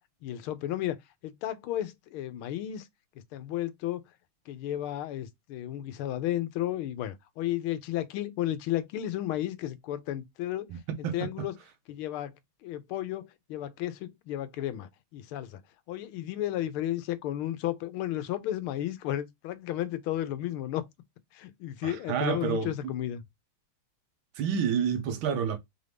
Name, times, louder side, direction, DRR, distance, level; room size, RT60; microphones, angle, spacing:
voice 1, 0.2-1.0 1.2-2.9 3.3-4.0 4.5-10.7 11.0-11.5 11.9-12.3 12.6-15.6 15.9-20.9 21.3-23.2, left 13 dB, 80° left, 1.5 m, -33 dB
voice 2, 21.8-22.7 24.4-25.6, right 7 dB, 70° right, 1.6 m, -28 dB
4.6 x 2.6 x 3.4 m
omnidirectional pair, 2.4 m